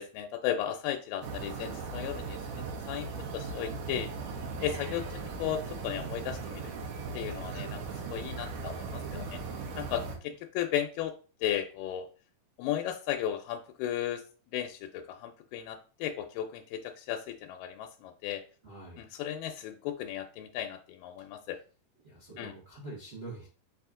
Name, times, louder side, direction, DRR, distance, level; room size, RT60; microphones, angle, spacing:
voice 1, 0.0-4.1 4.6-6.6 7.1-7.8 8.1-9.4 9.8-11.1 11.4-12.1 12.6-14.2 14.5-18.4 19.0-21.6 22.4-22.5, left 10 dB, 90° left, 4 dB, 2.2 m, -35 dB
sound 1, 1.2-10.2, right 4 dB, 70° right, 1.8 m, -38 dB
voice 2, 9.1-9.9 18.6-19.1 22.0-23.5, right 2 dB, 50° right, -5 dB, 0.7 m, -46 dB
5.2 x 2.8 x 3.6 m, 0.38 s
omnidirectional pair, 3.8 m